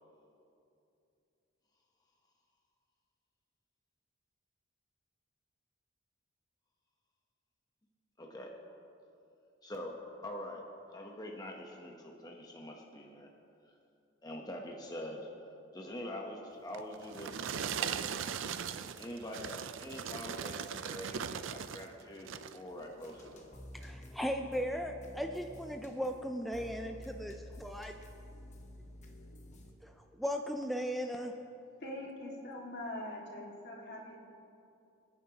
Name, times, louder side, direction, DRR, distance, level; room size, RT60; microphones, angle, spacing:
voice 1, 8.2-8.5 9.6-10.6 10.9-13.3 14.2-15.3 15.7-18.1 18.7-23.5, left 1 dB, 20° left, 0 dB, 0.9 m, -45 dB
sound 1, 16.7-21.9 22.2-22.6 23.2-23.3, right 7 dB, 70° right, 0.5 m, -39 dB
sound 2, 22.7-29.7, left 1 dB, 35° left, 1.2 m, -51 dB
voice 2, 23.7-27.9 29.8-29.9 30.2-31.3, equal, ahead, 3 dB, 0.4 m, -37 dB
voice 3, 31.8-34.2, left 1 dB, 55° left, -2 dB, 2.1 m, -43 dB
27.5 x 9.4 x 2.9 m, 2.7 s
head